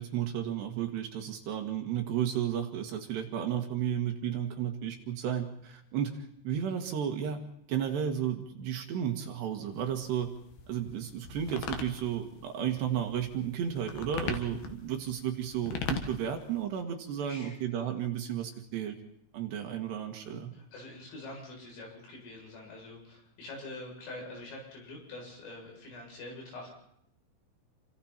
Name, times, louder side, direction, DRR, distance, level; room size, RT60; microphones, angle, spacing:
voice 1, 0.0-7.4 7.7-10.3 10.7-19.0 19.3-20.5, right 9 dB, 65° right, 4 dB, 3.4 m, -33 dB
sound 1, 9.7-16.6, left 6 dB, 60° left, 2.9 m, -40 dB
voice 2, 20.5-26.7, left 2 dB, 75° left, -1 dB, 10.0 m, -45 dB
29.0 x 25.0 x 4.4 m, 0.74 s
omnidirectional pair, 5.9 m